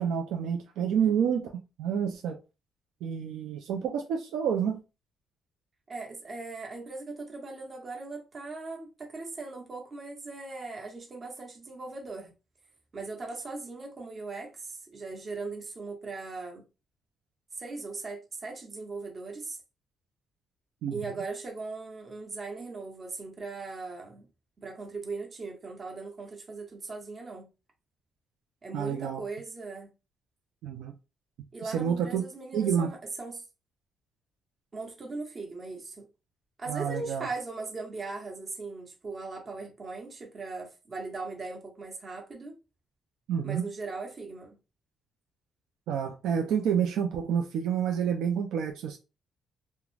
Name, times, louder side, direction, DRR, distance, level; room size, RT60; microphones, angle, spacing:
voice 1, 0.0-1.5 1.8-2.4 3.0-4.8 20.8-21.0 28.7-29.2 30.6-30.9 31.6-32.2 32.5-32.9 36.7-37.3 43.3-43.7 45.9-49.0, right 8 dB, 85° right, 0.4 m, -28 dB
voice 2, 0.8-1.1 5.9-12.3 12.9-16.6 17.5-19.6 20.9-24.3 24.6-27.5 28.6-29.9 31.5-33.4 34.7-36.0 36.6-42.6 43.4-44.6, right 3 dB, 40° right, 1.0 m, -39 dB
2.3 x 2.1 x 3.1 m
cardioid pair, 90°, 0 cm